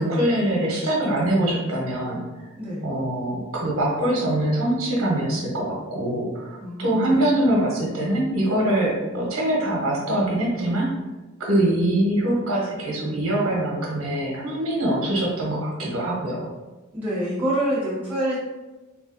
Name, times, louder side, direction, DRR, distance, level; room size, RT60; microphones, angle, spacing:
voice 1, 0.0-2.2 2.8-10.9 11.4-16.5, right 1 dB, 80° right, -3 dB, 1.0 m, -23 dB
voice 2, 6.6-7.2 16.9-18.4, right 1 dB, 10° right, -10 dB, 1.3 m, -26 dB
3.6 x 2.5 x 2.5 m, 1.1 s
head